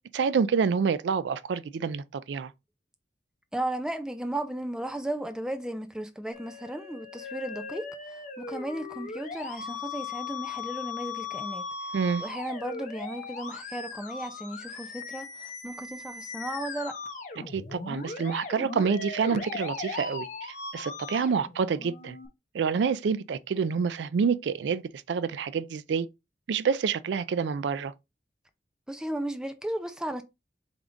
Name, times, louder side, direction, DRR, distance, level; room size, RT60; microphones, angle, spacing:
voice 1, 0.1-2.5 11.9-12.2 17.5-20.3 20.7-22.2 22.5-24.8 25.1-26.1 26.5-27.9, right 6 dB, 80° right, 0.3 m, -27 dB
voice 2, 3.5-7.9 8.4-11.6 12.2-15.3 15.6-17.0 28.9-30.2, right 1 dB, 5° right, 0.4 m, -35 dB
Musical instrument, 6.3-22.3, left 4 dB, 45° left, 0.8 m, -38 dB
3.6 x 3.6 x 3.8 m
head